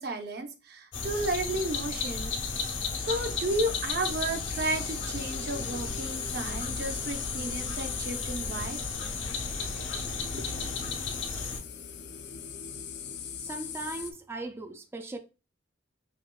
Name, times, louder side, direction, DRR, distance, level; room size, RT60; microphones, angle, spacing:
voice 1, 0.0-2.3 3.0-8.8 10.3-10.4, right 2 dB, 55° right, 0.7 m, -33 dB
sound 1, 0.9-11.6, left 4 dB, 80° left, 0.9 m, -34 dB
sound 2, 1.0-14.1, left 7 dB, 60° left, 0.4 m, -43 dB
voice 2, 13.4-15.2, right 2 dB, 15° right, 0.4 m, -38 dB
5.6 x 2.9 x 2.2 m
head